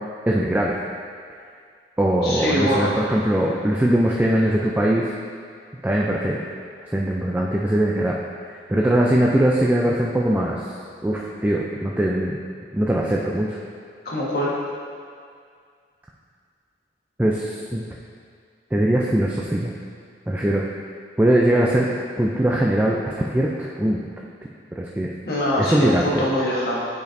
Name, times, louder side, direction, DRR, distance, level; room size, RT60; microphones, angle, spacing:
voice 1, 0.3-0.8 2.0-5.1 5.8-6.4 6.9-8.1 8.5-10.6 11.0-12.4 12.7-13.6 17.2-17.8 18.7-19.7 20.3-20.6 21.2-21.9 22.2-24.1 24.8-25.1 25.6-26.2, right 1 dB, 10° right, -3 dB, 0.3 m, -21 dB
voice 2, 2.2-2.9 14.0-14.5 25.3-26.8, equal, 60° left, -6 dB, 1.3 m, -23 dB
9.1 x 5.1 x 2.6 m, 2.2 s
head